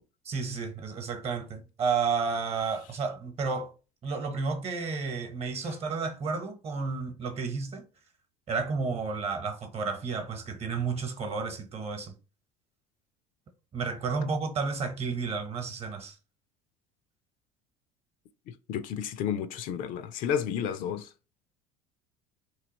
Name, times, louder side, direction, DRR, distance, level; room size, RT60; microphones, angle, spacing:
voice 1, 0.2-3.7 4.0-7.8 8.5-12.1 13.7-16.1, right 5 dB, 40° right, 1.0 m, -31 dB
voice 2, 18.5-21.1, left 8 dB, 55° left, 0.5 m, -32 dB
3.2 x 2.7 x 3.9 m
hypercardioid pair, 70°, 16 cm